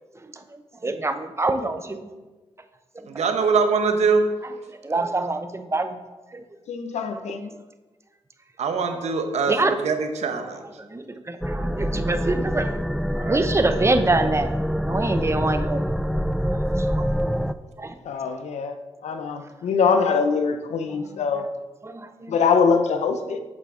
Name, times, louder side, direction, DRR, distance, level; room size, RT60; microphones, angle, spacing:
voice 1, 0.1-2.1 2.9-3.3 4.8-6.0 6.3-6.4 7.1-7.2 9.5-9.8 10.8-12.8 13.1-14.6 14.9-15.8 16.3-17.0 17.8-18.0 19.1-19.2 21.8-22.3, right 2 dB, 25° right, 8 dB, 0.8 m, -26 dB
voice 2, 3.1-4.3 8.6-9.5 9.8-10.6, right 5 dB, 85° right, 6 dB, 0.9 m, -22 dB
voice 3, 6.7-7.5 18.0-21.5 22.3-23.4, left 5 dB, 90° left, 8 dB, 0.7 m, -23 dB
sound 1, 11.4-17.5, equal, ahead, 0.3 m, -25 dB
8.5 x 6.8 x 3.7 m, 1.2 s
cardioid pair, 60°, 11 cm